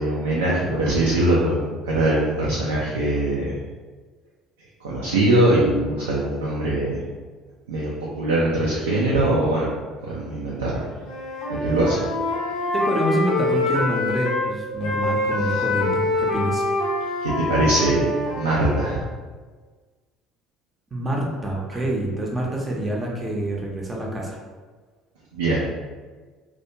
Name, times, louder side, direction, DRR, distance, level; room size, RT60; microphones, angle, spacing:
voice 1, 0.0-3.5 4.8-7.0 7.7-7.9 8.2-9.7 10.0-10.9 11.5-12.0 15.5-15.6 17.2-18.0 18.4-19.0 25.3-25.6, right 1 dB, 75° right, -5 dB, 0.4 m, -22 dB
Wind instrument woodwind instrument, 11.0-14.5 14.8-19.0, left 2 dB, 60° left, 0.5 m, -25 dB
voice 2, 12.7-16.6 20.9-24.4, right 1 dB, 20° right, -1 dB, 0.6 m, -26 dB
2.3 x 2.2 x 2.8 m, 1.4 s
figure-of-eight pair, 60°, 0 cm